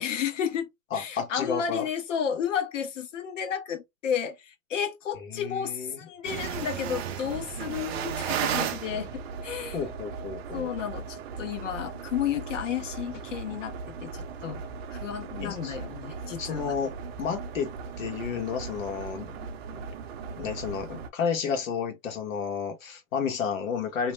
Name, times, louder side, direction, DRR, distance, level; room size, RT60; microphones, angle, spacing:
voice 1, 0.0-9.8 10.5-14.6 14.9-16.7, left 8 dB, 65° left, 0.9 m, -32 dB
voice 2, 0.9-1.9 5.3-6.0 9.7-10.7 15.4-15.8 16.4-16.9 17.2-19.8 20.4-24.1, left 6 dB, 85° left, 1.2 m, -32 dB
sound 1, 6.2-21.1, right 6 dB, 50° right, 0.5 m, -36 dB
2.9 x 2.0 x 3.1 m
supercardioid pair, 165°, 39 cm